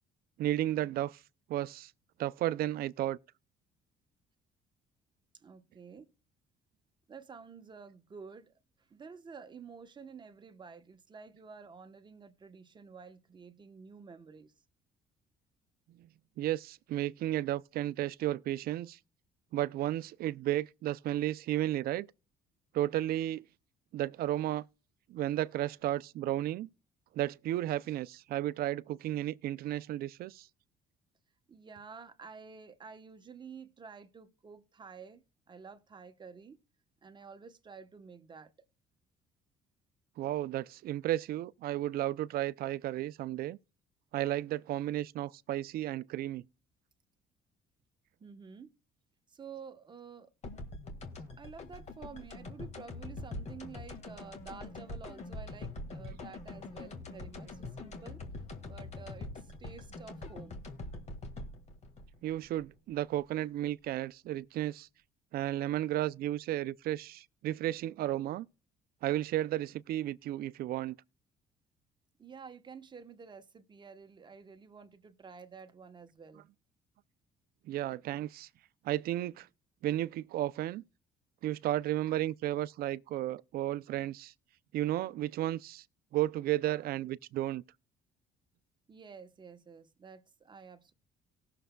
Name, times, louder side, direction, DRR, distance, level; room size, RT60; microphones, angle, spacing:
voice 1, 0.4-1.2 1.5-1.9 2.2-3.2 16.4-19.0 19.5-22.1 22.7-23.4 23.9-24.6 25.1-26.7 27.1-30.5 40.2-43.6 44.1-46.4 62.2-64.9 65.3-68.5 69.0-71.0 77.7-78.5 78.8-79.5 79.8-80.8 81.4-84.3 84.7-85.8 86.1-87.6, right 14 dB, 65° right, 0.4 m, -33 dB
voice 2, 5.3-6.1 7.1-8.5 8.9-14.5 31.5-36.6 37.0-38.5 48.2-48.7 49.3-50.3 51.4-58.2 58.6-60.6 72.2-76.4 88.9-90.9, right 5 dB, 25° right, 1.0 m, -50 dB
sound 1, 50.4-63.2, left 2 dB, 40° left, 1.8 m, -44 dB
18.5 x 6.7 x 2.3 m
cardioid pair, 110°, 17 cm